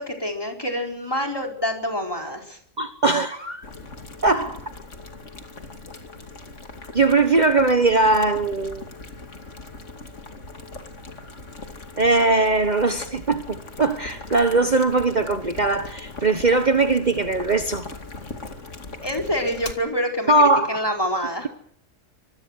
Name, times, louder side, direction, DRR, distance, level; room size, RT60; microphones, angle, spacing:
voice 1, 0.0-2.6 19.0-20.3 20.7-21.5, equal, 20° left, 4.4 m, -26 dB
voice 2, 2.8-3.6 4.2-4.6 6.9-8.8 12.0-17.9 20.3-20.8, right 3 dB, 35° right, 1.4 m, -20 dB
Boiling, 3.6-19.7, left 3 dB, 70° left, 2.8 m, -40 dB
25.5 x 21.5 x 6.5 m
omnidirectional pair, 1.3 m